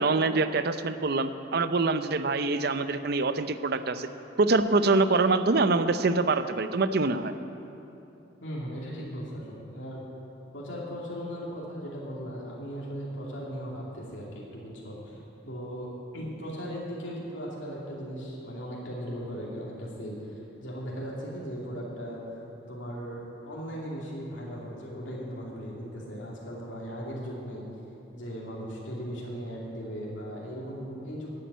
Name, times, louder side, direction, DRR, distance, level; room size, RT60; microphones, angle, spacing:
voice 1, 0.0-4.1 4.4-7.3, right 3 dB, 55° right, 11 dB, 0.6 m, -25 dB
voice 2, 8.4-10.0 10.5-15.9 16.1-22.3 22.7-27.6 28.1-31.4, equal, 85° left, -5 dB, 2.6 m, -38 dB
12.0 x 8.6 x 9.2 m, 2.9 s
head